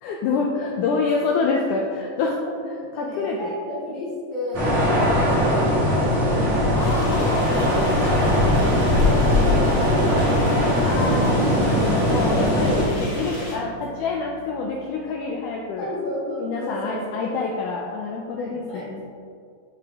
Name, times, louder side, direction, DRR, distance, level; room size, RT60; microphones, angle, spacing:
voice 1, 0.0-2.4 2.9-3.5 6.8-8.4 10.8-15.9 16.4-19.0, left 4 dB, 80° left, 0 dB, 1.8 m, -27 dB
voice 2, 2.4-6.8 7.9-10.9 12.3-12.7 13.0-13.2 15.7-17.3 18.3-19.0, left 1 dB, 65° left, -8 dB, 1.5 m, -33 dB
sound 1, 4.5-12.8, left 1 dB, 45° right, 1.6 m, -20 dB
sound 2, 6.8-13.5, left 1 dB, 45° left, 1.7 m, -36 dB
Bass guitar, 11.1-14.8, right 2 dB, 75° right, 2.0 m, -31 dB
6.8 x 4.7 x 3.5 m, 2.3 s
omnidirectional pair, 4.1 m